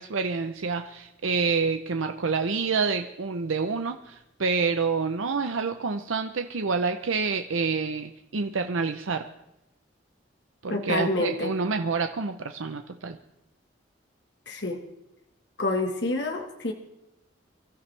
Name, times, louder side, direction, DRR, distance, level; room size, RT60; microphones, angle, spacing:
voice 1, 0.0-9.3 10.6-13.2, right 4 dB, 85° right, 7 dB, 0.7 m, -28 dB
voice 2, 10.7-11.5 14.5-14.8 15.6-16.7, left 2 dB, 60° left, 3 dB, 1.6 m, -28 dB
24.0 x 13.0 x 3.3 m, 0.88 s
head